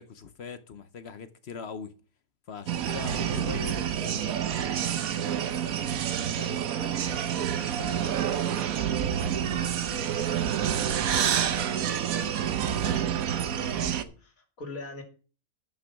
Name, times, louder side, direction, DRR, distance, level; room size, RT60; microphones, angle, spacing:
voice 1, 0.0-1.9 2.5-3.8, left 6 dB, 55° left, 0.9 m, -40 dB
sound 1, 2.7-14.0, right 9 dB, 75° right, 1.3 m, -28 dB
voice 2, 3.0-15.0, left 1 dB, 70° left, 3.0 m, -44 dB
11.5 x 6.1 x 5.8 m
omnidirectional pair, 1.5 m